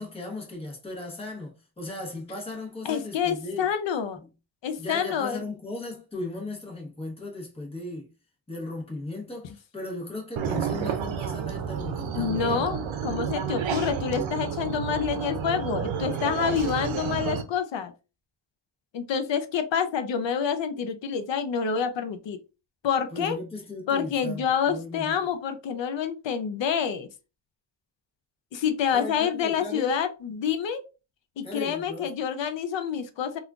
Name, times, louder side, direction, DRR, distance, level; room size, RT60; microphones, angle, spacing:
voice 1, 0.0-3.7 4.1-4.3 4.8-8.1 8.5-12.7 23.1-25.1 28.9-30.0 31.4-32.1, left 2 dB, 15° left, 0.9 m, -37 dB
voice 2, 2.8-4.2 4.6-5.4 12.1-17.9 18.9-22.4 22.8-23.4 23.9-27.1 28.5-30.8 31.4-33.4, left 7 dB, 70° left, 0.6 m, -27 dB
sound 1, 10.4-17.4, right 7 dB, 85° right, 0.6 m, -30 dB
3.6 x 2.4 x 2.3 m
wide cardioid pair, 150°, 45 cm